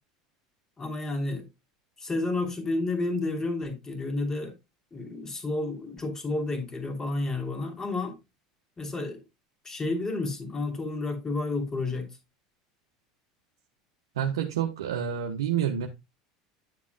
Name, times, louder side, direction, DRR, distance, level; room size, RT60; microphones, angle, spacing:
voice 1, 0.8-1.5 2.0-4.5 4.9-8.1 8.8-9.2 9.6-12.1, left 2 dB, 20° left, 2.9 m, -31 dB
voice 2, 14.2-15.9, right 9 dB, 85° right, 1.0 m, -28 dB
9.6 x 7.3 x 2.2 m
hypercardioid pair, 90°, 2 cm